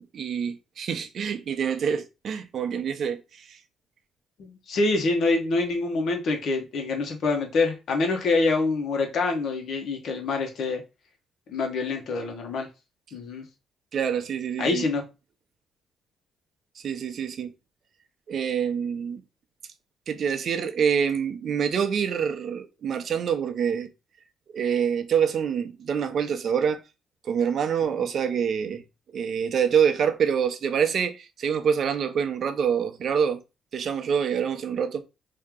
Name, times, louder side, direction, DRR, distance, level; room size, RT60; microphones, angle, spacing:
voice 1, 0.1-3.2 13.9-14.9 16.8-17.5 18.3-19.2 20.1-23.9 24.5-26.8 27.3-28.8 29.1-33.4 33.7-35.0, right 7 dB, 60° right, 0.6 m, -26 dB
voice 2, 4.4-10.8 11.5-12.7 13.1-13.4 14.6-15.0 28.0-28.1, left 3 dB, 65° left, 1.1 m, -26 dB
3.0 x 2.8 x 3.7 m
cardioid pair, 90°, 0 cm